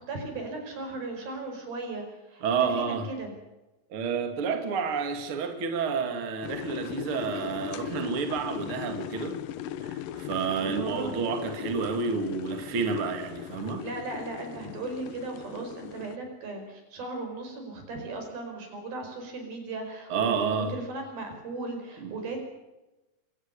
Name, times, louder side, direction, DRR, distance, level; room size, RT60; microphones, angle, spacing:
voice 1, 0.0-3.3 10.5-11.2 13.8-22.4, right 3 dB, 80° right, 6.9 m, -37 dB
voice 2, 2.4-3.1 3.9-9.4 9.8-13.8 20.1-20.7 22.0-22.1, right 5 dB, 40° right, 2.7 m, -30 dB
sound 1, 6.4-16.2, left 10 dB, 75° left, 2.4 m, -38 dB
25.5 x 17.5 x 6.9 m
omnidirectional pair, 4.2 m